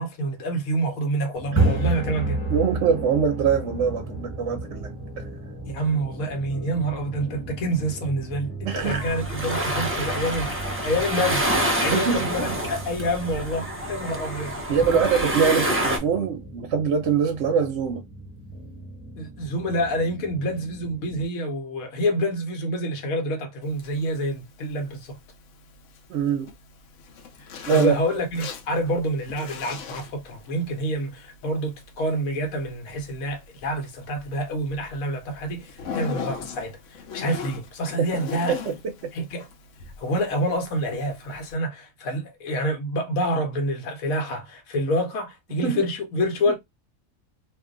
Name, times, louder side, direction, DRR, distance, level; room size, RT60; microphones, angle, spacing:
voice 1, 0.0-2.4 5.6-11.5 11.8-14.6 19.2-25.2 27.4-38.5 39.1-39.4 40.0-46.6, equal, 85° left, 1.2 m, -27 dB
sound 1, 1.3-21.2, right 2 dB, 10° left, 0.8 m, -33 dB
voice 2, 2.5-5.3 8.6-9.0 11.9-12.5 14.7-18.0 26.1-26.5 27.7-27.9 38.5-38.7 45.6-45.8, right 6 dB, 65° right, 0.8 m, -23 dB
sound 2, 8.8-16.0, equal, 20° right, 0.4 m, -27 dB
Zipper (clothing), 23.6-41.5, left 6 dB, 70° left, 0.9 m, -41 dB
2.5 x 2.2 x 3.7 m
omnidirectional pair, 1.5 m